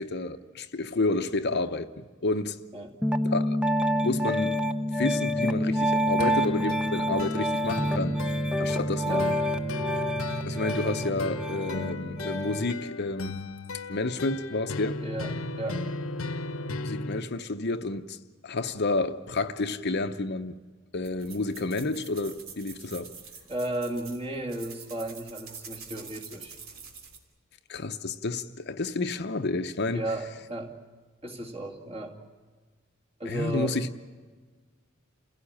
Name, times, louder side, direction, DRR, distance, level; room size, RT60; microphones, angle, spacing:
voice 1, 0.0-2.6 3.2-3.6 4.0-4.6 5.0-8.2 8.6-9.3 10.5-13.4 13.9-15.0 16.8-18.2 18.4-20.6 20.9-23.1 27.7-30.0 33.3-33.9, left 3 dB, 55° left, 0.8 m, -30 dB
Piano, 3.0-12.7, equal, 5° right, 0.7 m, -27 dB
sound 1, 6.2-17.2, left 2 dB, 85° left, 1.0 m, -36 dB
voice 2, 15.0-15.9 23.5-26.6 29.9-30.7 31.2-32.2 33.2-33.8, right 1 dB, 30° right, 2.4 m, -34 dB
sound 2, 21.0-27.2, right 6 dB, 85° right, 3.0 m, -46 dB
29.0 x 16.5 x 8.7 m
head